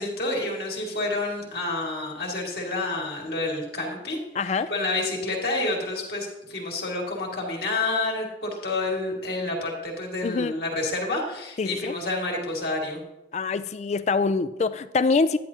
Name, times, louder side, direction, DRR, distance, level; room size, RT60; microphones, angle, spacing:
voice 1, 0.0-4.2 4.7-13.0, left 2 dB, 60° left, -1 dB, 2.0 m, -29 dB
voice 2, 4.4-4.7 10.2-10.5 11.6-11.9 13.3-15.4, left 4 dB, 40° left, 14 dB, 0.3 m, -24 dB
10.5 x 10.0 x 2.8 m, 0.92 s
head